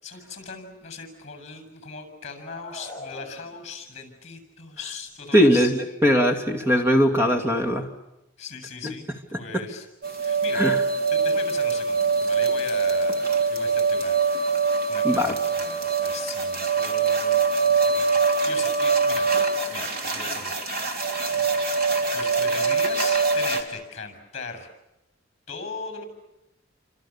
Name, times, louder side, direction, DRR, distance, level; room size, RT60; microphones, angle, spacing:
voice 1, 0.0-6.1 8.4-9.9 10.2-10.7 11.1-17.5 17.9-19.3 19.7-21.1 22.1-24.7 25.5-26.0, left 4 dB, 40° left, 8 dB, 7.0 m, -39 dB
sound 1, 2.4-4.0, left 2 dB, 15° left, 4.2 m, -42 dB
voice 2, 5.3-7.9 8.8-8.9 9.3-9.6 10.5-10.8 15.0-15.4, equal, 15° right, 4 dB, 2.5 m, -20 dB
sound 2, 10.0-23.6, right 4 dB, 50° right, 3.4 m, -23 dB
29.5 x 26.0 x 7.2 m, 0.92 s
head